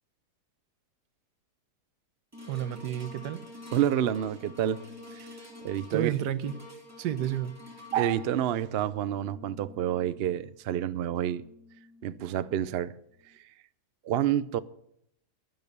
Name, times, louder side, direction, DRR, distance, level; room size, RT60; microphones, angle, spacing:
sound 1, 2.3-12.7 13.3-13.4, left 2 dB, 10° right, 2.6 m, -49 dB
voice 1, 2.5-3.4 5.9-6.5 7.0-7.5, right 11 dB, 90° right, 1.4 m, -30 dB
voice 2, 3.7-4.8 5.1-5.3 5.6-6.1 7.9-11.4 12.0-12.9 14.0-14.6, right 10 dB, 65° right, 0.6 m, -28 dB
12.0 x 11.5 x 6.6 m
omnidirectional pair, 1.7 m